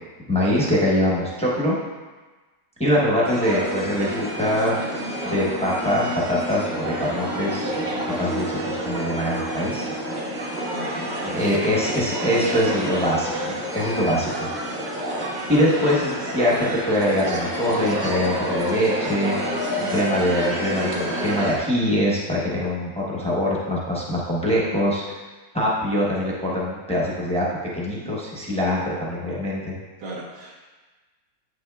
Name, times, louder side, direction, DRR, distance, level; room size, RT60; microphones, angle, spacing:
voice 1, 0.3-1.8 2.8-9.9 11.2-14.3 15.5-25.2 25.5-27.5 27.7-29.8, equal, 10° left, -6 dB, 0.4 m, -23 dB
sound 1, 3.3-21.6, equal, 35° right, 0.8 m, -29 dB
voice 2, 10.7-11.9 12.2-12.8 30.0-30.6, right 2 dB, 70° right, -3 dB, 1.8 m, -34 dB
8.0 x 6.1 x 2.3 m, 1.3 s
omnidirectional pair, 2.0 m